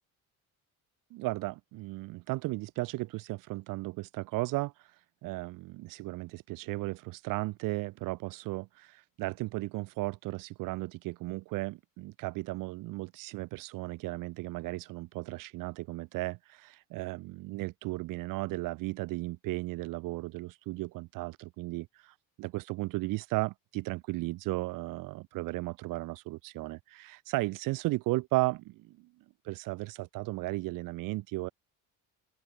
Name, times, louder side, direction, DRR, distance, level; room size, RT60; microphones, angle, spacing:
voice 1, 1.1-29.0 29.4-31.5, right 21 dB, 70° right, 2.4 m, -35 dB
open air
cardioid pair, 170°, 33 cm